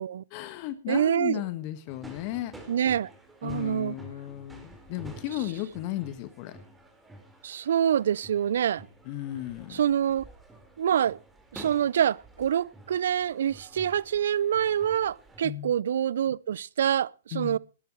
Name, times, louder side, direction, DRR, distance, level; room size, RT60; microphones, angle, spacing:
voice 1, 0.3-2.5 3.4-6.6 9.0-9.8 15.4-15.7 17.3-17.6, left 14 dB, 45° left, 1.6 m, -35 dB
voice 2, 0.9-1.4 2.7-3.1 3.4-4.0 7.4-8.9 9.7-10.2 10.8-11.2 11.5-17.6, right 9 dB, 65° right, 0.6 m, -26 dB
sound 1, 1.9-15.4, right 1 dB, 10° right, 4.7 m, -50 dB
19.5 x 12.0 x 3.1 m
hypercardioid pair, 115°, 0 cm